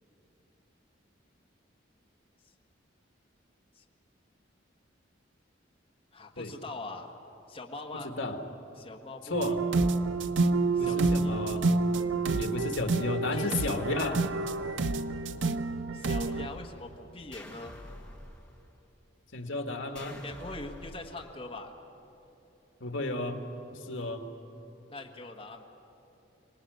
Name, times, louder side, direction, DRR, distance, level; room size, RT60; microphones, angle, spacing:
voice 1, 6.1-7.1 7.5-8.1 8.8-9.7 10.7-11.4 13.3-14.2 15.9-17.8 20.2-21.7 24.9-25.6, left 2 dB, 30° left, 0 dB, 1.5 m, -42 dB
voice 2, 8.0-8.4 9.2-9.6 10.8-11.7 12.3-14.2 19.3-20.2 22.8-23.5 23.8-24.2, left 2 dB, 75° left, 5 dB, 1.8 m, -33 dB
sound 1, 9.3-16.5, right 3 dB, 70° right, 0.8 m, -28 dB
sound 2, 16.2-17.0 17.3-18.9 20.0-21.3, left 1 dB, 5° left, 1.6 m, -48 dB
25.0 x 19.0 x 9.3 m, 2.9 s
head